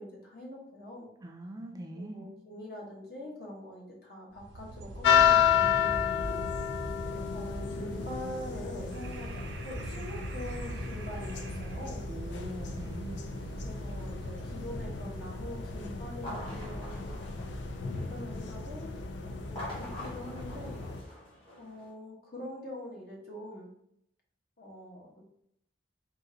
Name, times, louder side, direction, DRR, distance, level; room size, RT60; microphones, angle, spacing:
voice 1, 0.0-1.1 1.9-6.4 7.1-12.0 13.6-17.2 17.9-18.9 19.2-20.8 21.6-23.7 24.6-25.2, left 1 dB, 55° left, -2 dB, 1.2 m, -44 dB
voice 2, 1.2-2.3 12.1-13.3, right 1 dB, 20° right, 2 dB, 0.5 m, -42 dB
sound 1, 4.3-16.3, right 1 dB, 80° right, 0.6 m, -43 dB
sound 2, 5.0-21.0, left 8 dB, 75° left, 0.5 m, -32 dB
sound 3, 16.2-18.3 19.4-21.9, left 1 dB, 30° left, 1.5 m, -45 dB
3.9 x 2.5 x 3.9 m, 0.73 s
head